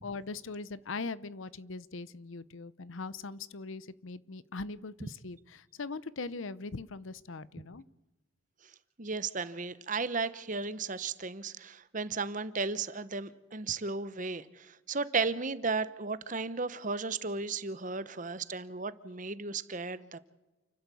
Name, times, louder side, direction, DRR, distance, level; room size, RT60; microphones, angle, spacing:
voice 1, 0.0-7.8, left 3 dB, 70° left, 18 dB, 0.7 m, -41 dB
voice 2, 9.0-20.2, right 4 dB, 35° right, 15 dB, 0.9 m, -35 dB
29.5 x 12.0 x 8.4 m, 1.1 s
head